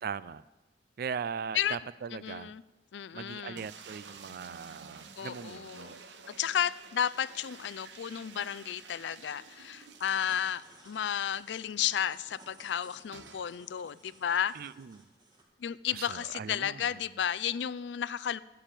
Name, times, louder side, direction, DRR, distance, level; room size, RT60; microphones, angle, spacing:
voice 1, 0.0-0.4 1.0-2.5 3.1-6.0 14.5-15.1 15.9-17.0, right 6 dB, 55° right, 0.4 m, -39 dB
voice 2, 2.1-2.6 2.9-3.6 5.2-6.0 6.3-14.6 15.6-18.4, left 9 dB, 75° left, 0.4 m, -33 dB
sound 1, 3.5-10.7 11.0-11.1 11.4-11.5 13.1-13.5, right 5 dB, 80° right, 1.0 m, -51 dB
sound 2, 9.8-15.4, right 1 dB, 25° right, 2.4 m, -58 dB
11.5 x 6.9 x 9.0 m
head